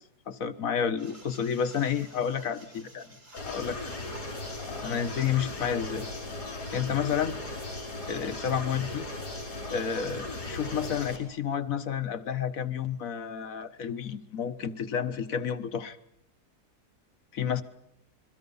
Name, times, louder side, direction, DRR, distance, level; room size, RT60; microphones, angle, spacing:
voice 1, 0.3-4.0 4.6-6.1 6.7-7.3 8.1-9.1 9.7-16.0 17.3-17.6, left 7 dB, 60° left, 11 dB, 1.5 m, -30 dB
sound 1, 1.0-6.2, right 1 dB, 80° right, 6.8 m, -52 dB
sound 2, 3.4-11.2, left 2 dB, 90° left, 5.5 m, -37 dB
29.0 x 22.5 x 5.5 m, 0.75 s
omnidirectional pair, 1.7 m